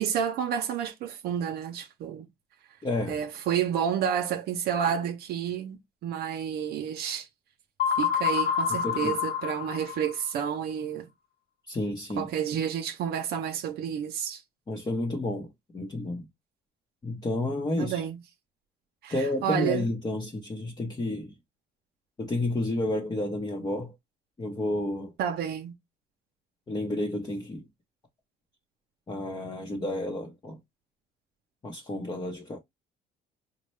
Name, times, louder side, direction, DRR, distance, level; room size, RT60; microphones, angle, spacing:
voice 1, 0.0-2.3 3.1-7.3 8.0-11.1 12.2-14.4 17.8-18.2 19.0-19.8 25.2-25.7, right 8 dB, 70° right, 0.6 m, -30 dB
voice 2, 2.8-3.2 8.8-9.2 11.7-12.3 14.7-16.3 17.0-18.0 19.1-21.4 22.2-23.9 24.4-25.1 26.7-27.7 29.1-30.6 31.6-32.6, left 1 dB, 25° left, 0.8 m, -31 dB
sound 1, 7.8-10.4, left 7 dB, 75° left, 1.0 m, -28 dB
4.1 x 2.1 x 3.1 m
cardioid pair, 110°, 17 cm